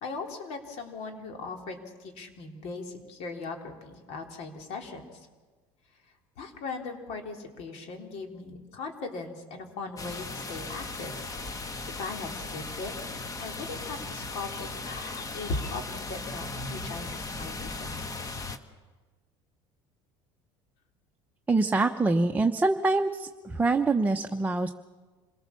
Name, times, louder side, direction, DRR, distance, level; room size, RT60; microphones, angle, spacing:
voice 1, 0.0-5.3 6.4-11.1 12.0-12.9 13.4-18.0, left 3 dB, 65° left, 3 dB, 3.6 m, -39 dB
sound 1, 10.0-18.6, left 3 dB, 30° left, 1.7 m, -37 dB
voice 2, 21.5-24.7, right 3 dB, 15° right, 4 dB, 0.9 m, -25 dB
27.0 x 18.5 x 7.1 m, 1.3 s
supercardioid pair, 95°, 12 cm